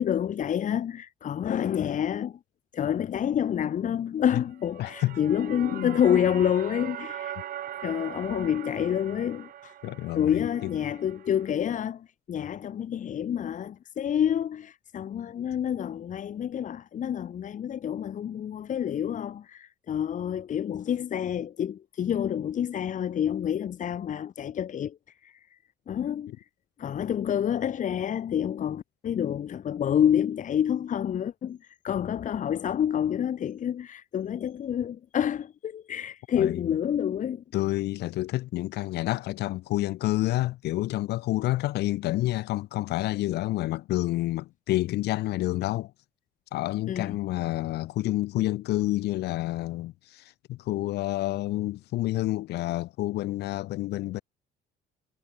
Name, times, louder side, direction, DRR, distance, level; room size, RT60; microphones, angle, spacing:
voice 1, 0.0-2.4 2.7-7.3 7.8-9.7 10.1-25.0 25.2-25.3 25.9-26.4 26.8-31.6 31.8-37.4 46.9-47.2, left 9 dB, 50° left, 2.0 m, -28 dB
sound 1, 4.5-11.5, right 11 dB, 60° right, 2.6 m, -41 dB
voice 2, 4.8-5.2 5.7-6.0 9.8-10.7 36.3-36.6 37.5-45.9 46.5-54.2, left 16 dB, 80° left, 2.7 m, -29 dB
cardioid pair, 110°, 17 cm